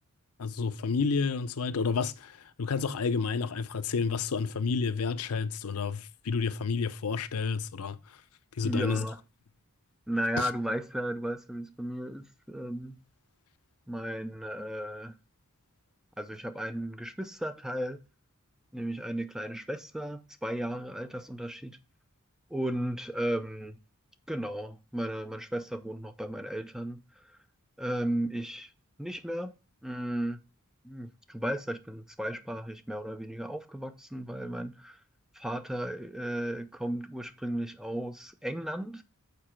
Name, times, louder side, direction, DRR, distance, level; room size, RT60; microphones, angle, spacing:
voice 1, 0.4-8.0 8.6-9.0 10.4-10.5, left 5 dB, 75° left, 0.6 m, -30 dB
voice 2, 8.6-9.2 10.1-13.0 13.9-15.1 16.2-18.0 18.7-21.8 22.5-23.8 24.3-27.0 27.3-27.4 27.8-28.7 29.0-29.5 29.8-30.4 30.8-35.0 35.3-39.0, right 1 dB, ahead, 0.5 m, -35 dB
6.8 x 4.8 x 4.4 m
head